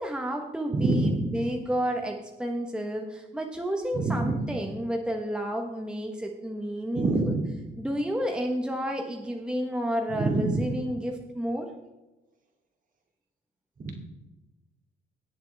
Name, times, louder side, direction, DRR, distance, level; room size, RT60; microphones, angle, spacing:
voice 1, 0.0-7.4 7.8-11.7, equal, 5° right, 2 dB, 1.2 m, -31 dB
voice 2, 0.7-1.4 3.9-4.4 6.9-7.5 10.1-10.7 13.8-14.0, right 2 dB, 45° right, 2 dB, 2.7 m, -26 dB
18.5 x 7.5 x 3.5 m, 1.1 s
cardioid pair, 100°, 20 cm